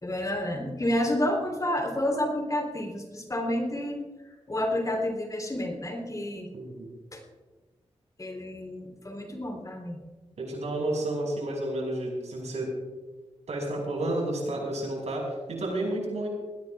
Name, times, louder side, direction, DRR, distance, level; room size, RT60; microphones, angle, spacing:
voice 1, 0.0-4.1 4.5-6.5 7.1-7.2 8.2-10.0, left 1 dB, 30° left, 2 dB, 3.5 m, -30 dB
voice 2, 6.5-6.9 10.4-12.7 13.5-16.3, right 1 dB, 75° right, -1 dB, 5.8 m, -31 dB
21.5 x 17.0 x 2.4 m, 1.2 s
cardioid pair, 70°, 12 cm